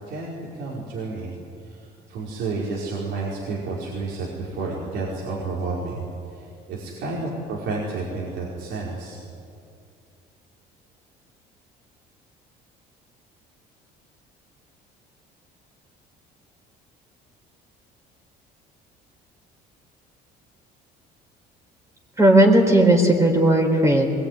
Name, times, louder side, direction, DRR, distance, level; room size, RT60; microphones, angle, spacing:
voice 1, 0.0-6.0 6.3-9.2, right 3 dB, 80° right, -5 dB, 4.9 m, -31 dB
voice 2, 22.2-24.2, right 1 dB, 15° right, 1 dB, 4.1 m, -16 dB
21.5 x 21.0 x 9.4 m, 2.5 s
cardioid pair, 105°, 19 cm